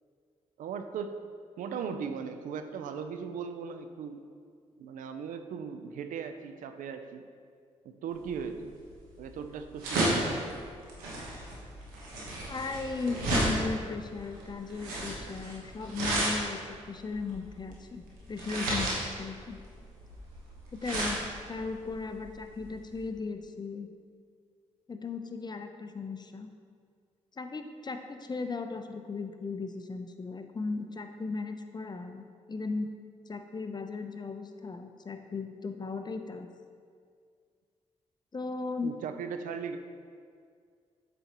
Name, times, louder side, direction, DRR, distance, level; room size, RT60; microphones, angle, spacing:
voice 1, 0.6-1.1 1.6-4.2 4.8-7.3 7.8-8.7 9.2-10.3 38.8-39.8, right 6 dB, 75° right, 8 dB, 0.5 m, -38 dB
sound 1, 8.3-23.0, right 1 dB, 90° right, 1.2 m, -33 dB
voice 2, 12.5-16.6 16.9-19.6 20.7-23.9 24.9-26.5 27.4-33.0 33.3-36.5 38.3-39.0, left 4 dB, 30° left, 7 dB, 0.6 m, -37 dB
7.8 x 5.2 x 3.0 m, 2.1 s
hypercardioid pair, 45°, 14 cm